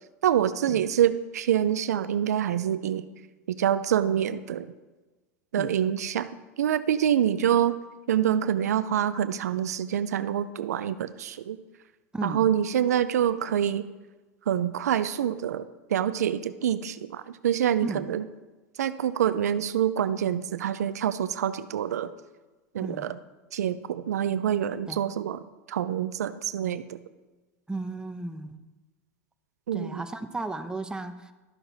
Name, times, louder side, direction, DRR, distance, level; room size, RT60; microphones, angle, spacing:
voice 1, 0.2-3.0 3.5-4.7 5.5-6.3 6.6-7.8 8.1-11.6 12.2-13.9 14.5-18.2 18.8-22.1 22.7-23.2 23.5-25.4 25.7-27.0 29.7-30.0, right 10 dB, 90° right, 13 dB, 0.5 m, -26 dB
voice 2, 12.1-12.5 17.8-18.1 22.8-23.1 24.9-25.1 27.7-28.6 29.7-31.3, right 2 dB, 10° right, 8 dB, 0.8 m, -35 dB
12.0 x 6.8 x 4.0 m, 1.2 s
hypercardioid pair, 100°, 9 cm